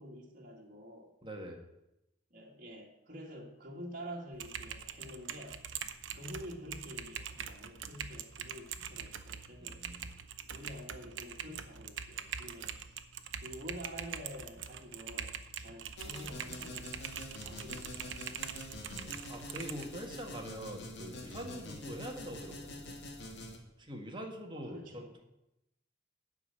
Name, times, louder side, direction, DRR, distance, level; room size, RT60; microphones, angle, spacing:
voice 1, 0.0-1.1 2.3-5.6 6.1-9.8 10.5-13.0 13.4-18.5 24.5-25.2, equal, 50° right, -2 dB, 2.0 m, -48 dB
voice 2, 1.2-1.6 9.6-10.1 18.9-22.9 23.8-25.2, equal, 25° right, 2 dB, 1.8 m, -44 dB
Typing, 4.3-19.9, right 7 dB, 85° right, 0.8 m, -43 dB
sound 1, 16.0-23.6, left 1 dB, 65° left, 2.1 m, -46 dB
12.0 x 5.0 x 8.8 m, 0.89 s
head